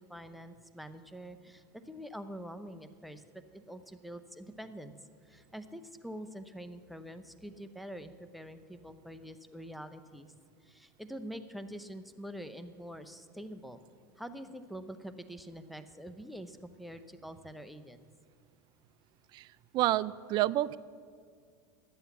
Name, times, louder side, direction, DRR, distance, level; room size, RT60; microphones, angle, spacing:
voice 1, 0.0-4.9 5.2-10.3 10.6-13.8 14.2-18.0, equal, ahead, 9 dB, 0.7 m, -45 dB
voice 2, 19.7-20.8, right 15 dB, 45° right, 19 dB, 0.4 m, -29 dB
11.0 x 8.0 x 8.3 m, 2.1 s
supercardioid pair, 115°, 11 cm